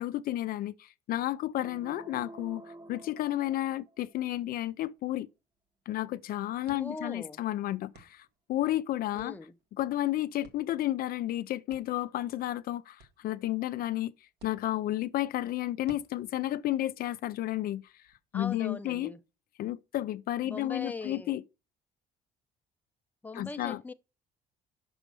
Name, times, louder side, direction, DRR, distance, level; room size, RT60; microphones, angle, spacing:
voice 1, 0.0-5.3 5.9-9.4 9.8-14.1 14.4-18.0 18.3-19.1 19.6-21.4 23.3-23.8, left 14 dB, 60° left, 0.4 m, -32 dB
sound 1, 1.6-4.2, right 2 dB, 25° right, 0.9 m, -49 dB
sound 2, 4.1-18.2, right 3 dB, 75° right, 1.5 m, -62 dB
voice 2, 6.7-7.4 9.2-9.5 18.3-19.2 20.4-21.3 23.2-23.9, left 3 dB, 10° left, 0.6 m, -40 dB
6.2 x 5.2 x 6.7 m
cardioid pair, 110°, 17 cm